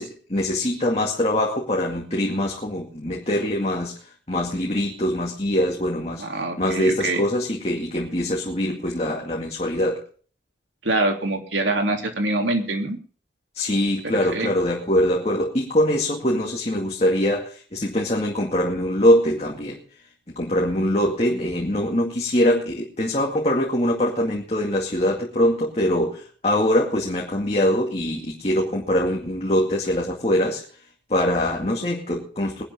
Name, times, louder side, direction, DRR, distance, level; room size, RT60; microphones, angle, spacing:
voice 1, 0.0-6.3 6.6-10.0 13.5-19.8 20.3-30.6 31.1-32.6, left 1 dB, 35° left, -1 dB, 2.2 m, -23 dB
voice 2, 6.2-7.2 10.8-13.0 14.0-14.5, right 2 dB, 90° right, 3 dB, 3.2 m, -24 dB
21.0 x 11.5 x 3.7 m, 0.41 s
head